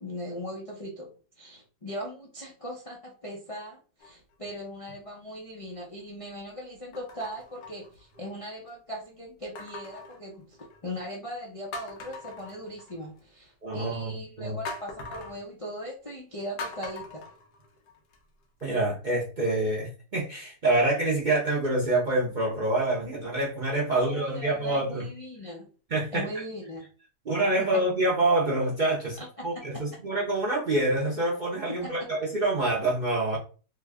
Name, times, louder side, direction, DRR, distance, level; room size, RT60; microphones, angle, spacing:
voice 1, 0.0-17.2 23.9-25.7 26.1-26.9 27.6-27.8 29.2-29.8 31.8-31.9, equal, 45° left, -2 dB, 0.4 m, -39 dB
sound 1, 4.0-4.5 5.2-5.3 6.9-8.4 9.6-10.9 11.3-11.4 11.7-13.2 14.7-15.4 16.6-18.2 18.6-18.7, left 3 dB, 90° left, 1.3 m, -42 dB
voice 2, 13.6-14.6 18.6-25.0 25.9-26.3 27.3-29.2 29.4-33.4, right 2 dB, 45° right, -4 dB, 0.6 m, -26 dB
3.3 x 2.2 x 3.4 m, 0.37 s
omnidirectional pair, 1.7 m